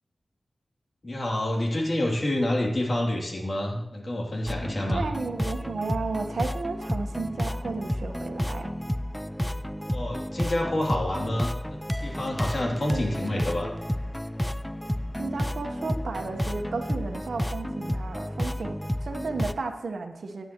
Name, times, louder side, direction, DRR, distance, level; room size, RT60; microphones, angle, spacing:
voice 1, 1.0-5.1 9.9-13.7, left 1 dB, 50° left, -1 dB, 2.9 m, -28 dB
sound 1, 4.5-19.5, equal, 5° left, 0.4 m, -31 dB
voice 2, 4.9-8.7 12.9-13.7 15.2-20.5, right 4 dB, 85° right, 5 dB, 1.2 m, -33 dB
16.5 x 10.0 x 3.0 m, 0.94 s
wide cardioid pair, 85°, 0 cm